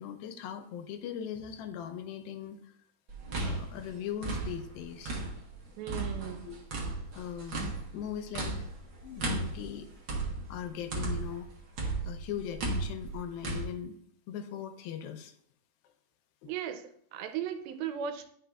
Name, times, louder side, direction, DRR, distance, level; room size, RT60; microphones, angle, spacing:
voice 1, 0.0-2.7 3.4-5.2 6.5-6.6 7.1-8.7 9.0-9.9 10.5-11.5 12.0-14.0 14.3-15.3 16.4-16.5, left 9 dB, 85° left, 8 dB, 2.5 m, -39 dB
sound 1, 3.1-5.5 5.9-11.4 11.8-13.6, right 2 dB, 65° right, 1.2 m, -35 dB
voice 2, 5.8-6.5 16.4-18.3, right 9 dB, 90° right, 8 dB, 2.5 m, -37 dB
10.0 x 5.6 x 2.3 m, 0.67 s
omnidirectional pair, 4.2 m